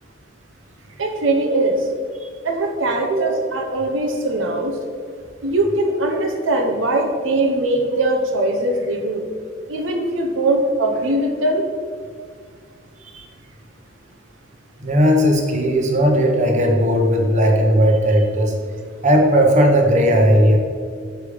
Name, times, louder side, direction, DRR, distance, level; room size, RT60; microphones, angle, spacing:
voice 1, 1.0-1.8 2.4-4.7 5.4-9.2 9.7-11.6, right 2 dB, 75° right, 2 dB, 0.8 m, -21 dB
voice 2, 14.8-18.5 19.0-20.6, equal, 35° right, 2 dB, 1.0 m, -16 dB
6.7 x 4.9 x 5.0 m, 2.1 s
head